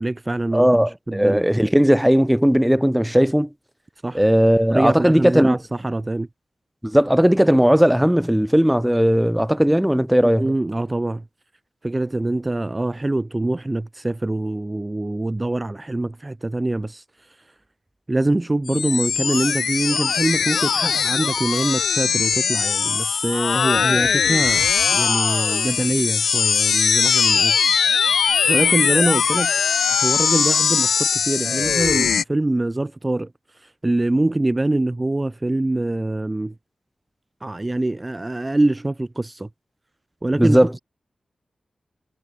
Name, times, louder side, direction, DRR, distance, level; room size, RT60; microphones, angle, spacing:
voice 1, 0.0-1.5 4.0-4.2 4.7-6.3 10.4-11.2 11.8-17.4 18.1-27.8 28.4-29.5 29.9-33.3 33.5-36.5 37.4-39.5 40.2-40.6, right 2 dB, 25° right, 3.1 m, -24 dB
voice 2, 0.5-3.5 4.1-5.6 6.8-10.5 40.4-40.7, equal, 5° right, 4.7 m, -17 dB
sound 1, 18.7-32.2, left 6 dB, 90° left, 0.9 m, -20 dB
wide cardioid pair, 80°, 0 cm